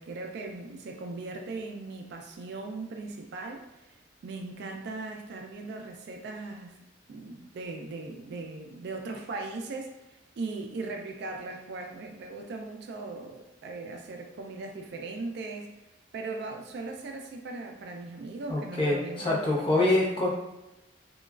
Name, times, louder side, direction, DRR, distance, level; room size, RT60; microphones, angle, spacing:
voice 1, 0.0-6.8 7.1-15.7 16.1-19.9, right 3 dB, 60° right, 3 dB, 0.3 m, -39 dB
voice 2, 18.5-20.3, left 2 dB, 25° left, -4 dB, 0.6 m, -25 dB
3.0 x 2.2 x 2.3 m, 0.97 s
head